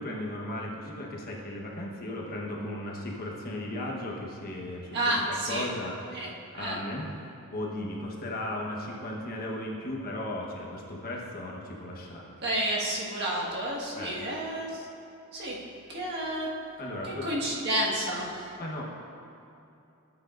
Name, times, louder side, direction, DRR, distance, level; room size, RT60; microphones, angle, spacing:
voice 1, 0.0-4.9 5.3-6.2 6.5-7.1 7.5-12.4 14.0-14.1 16.8-17.3 18.6-18.8, left 1 dB, 45° left, -2 dB, 1.1 m, -36 dB
voice 2, 4.9-5.7 6.1-6.3 6.6-6.8 12.4-14.9 15.3-15.6 15.9-16.5 17.0-18.5, right 1 dB, 50° right, -5 dB, 1.6 m, -30 dB
14.0 x 7.9 x 2.5 m, 2.7 s
head